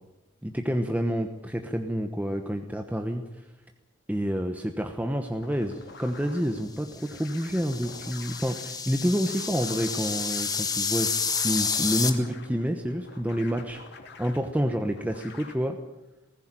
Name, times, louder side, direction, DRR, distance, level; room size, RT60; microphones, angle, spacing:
voice 1, 0.4-3.2 4.1-13.8 14.2-15.8, equal, 10° right, 5 dB, 1.1 m, -28 dB
sound 1, 5.4-15.5, left 4 dB, 60° left, 2.8 m, -48 dB
sound 2, 7.0-12.1, left 5 dB, 20° left, 1.5 m, -30 dB
19.5 x 15.0 x 9.0 m, 1.0 s
head